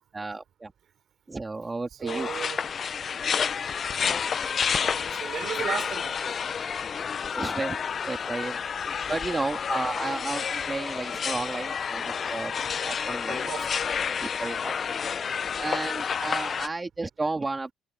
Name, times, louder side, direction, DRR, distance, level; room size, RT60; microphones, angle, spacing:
voice 1, 0.1-0.7 1.3-2.3 7.3-8.6 9.1-12.5 12.8-13.4 14.2-14.8 15.6-17.7, right 3 dB, 15° right, 1.8 m, -32 dB
voice 2, 2.0-2.6 4.7-6.3 13.2-13.8, right 9 dB, 45° right, 3.6 m, -35 dB
sound 1, 2.1-16.7, left 6 dB, 30° left, 0.3 m, -30 dB
cardioid pair, 155°, 0 cm